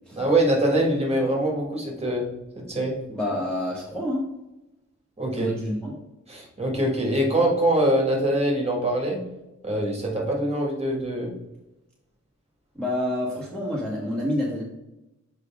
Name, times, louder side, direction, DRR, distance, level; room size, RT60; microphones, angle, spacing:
voice 1, 0.1-2.2 2.5-2.9 5.2-5.5 6.3-9.2 9.6-11.3, right 1 dB, 20° right, -1 dB, 1.6 m, -23 dB
voice 2, 3.1-4.2 5.4-5.9 12.7-14.6, left 1 dB, 5° left, -5 dB, 1.0 m, -28 dB
6.8 x 4.9 x 3.5 m, 0.94 s
wide cardioid pair, 165°, 29 cm